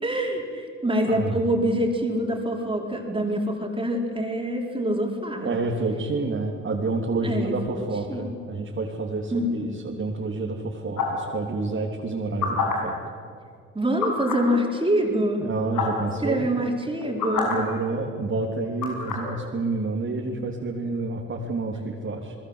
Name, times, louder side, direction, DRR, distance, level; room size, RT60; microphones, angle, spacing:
voice 1, 0.0-5.5 7.2-8.4 9.3-9.6 13.7-15.4 16.2-17.5, equal, 15° right, 0 dB, 4.6 m, -25 dB
voice 2, 5.4-13.0 15.4-16.5 17.5-22.3, right 3 dB, 40° right, -2 dB, 3.3 m, -29 dB
sound 1, 11.0-11.2 12.2-12.7 14.0-14.4 15.4-15.5 15.7-16.0 16.9-17.5 18.8-19.3, left 5 dB, 85° left, 6.7 m, -27 dB
29.5 x 21.0 x 8.2 m, 2.2 s
cardioid pair, 90°, 30 cm